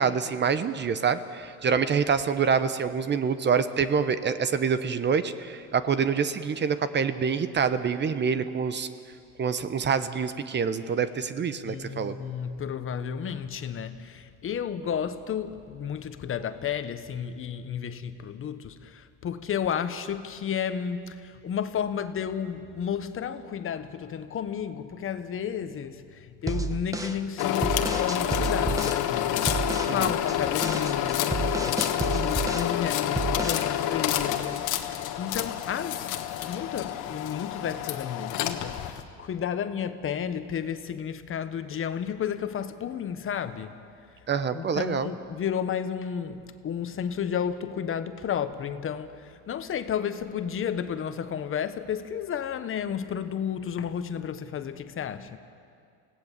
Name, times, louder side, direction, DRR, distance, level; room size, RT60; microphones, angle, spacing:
voice 1, 0.0-8.9 9.4-12.2 29.9-30.1 44.3-45.1, right 6 dB, 35° right, 12 dB, 1.0 m, -26 dB
voice 2, 11.5-43.8 44.5-55.4, left 8 dB, 40° left, 10 dB, 1.2 m, -32 dB
sound 1, 26.5-29.0 29.5-30.0 30.3-32.8 33.2-33.7, right 3 dB, 10° right, 1.2 m, -31 dB
sound 2, 27.4-39.0, left 11 dB, 70° left, 1.5 m, -28 dB
25.0 x 17.0 x 7.4 m, 2.3 s
supercardioid pair, 95°, 32 cm